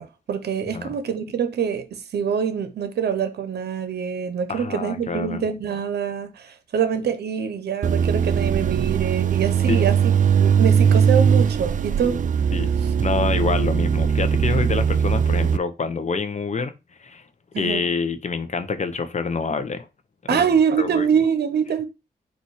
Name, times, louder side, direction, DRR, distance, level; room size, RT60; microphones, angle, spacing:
voice 1, 0.0-12.2 12.8-12.9 17.5-17.9 20.3-21.8, right 7 dB, 75° right, 0.8 m, -25 dB
voice 2, 4.5-5.4 9.7-9.8 12.5-12.7 13.0-16.7 17.0-17.2 17.6-19.9 20.2-20.5 20.8-21.1, left 4 dB, 45° left, 0.8 m, -26 dB
sound 1, 7.8-15.6, right 7 dB, 50° right, 0.4 m, -20 dB
4.2 x 2.6 x 4.7 m
cardioid pair, 60°, 17 cm